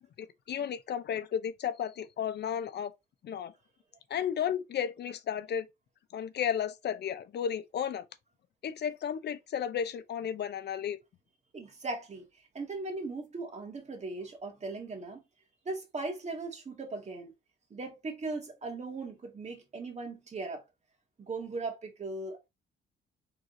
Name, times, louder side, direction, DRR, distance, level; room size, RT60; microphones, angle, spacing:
voice 1, 0.2-2.9 3.2-3.5 4.1-5.7 6.1-8.0 8.6-11.0, left 8 dB, 60° left, 0.7 m, -33 dB
voice 2, 11.5-12.3 12.5-15.2 15.7-17.3 17.7-20.6 21.2-22.5, right 3 dB, 35° right, 1.9 m, -38 dB
4.7 x 3.8 x 2.6 m
cardioid pair, 90°, 20 cm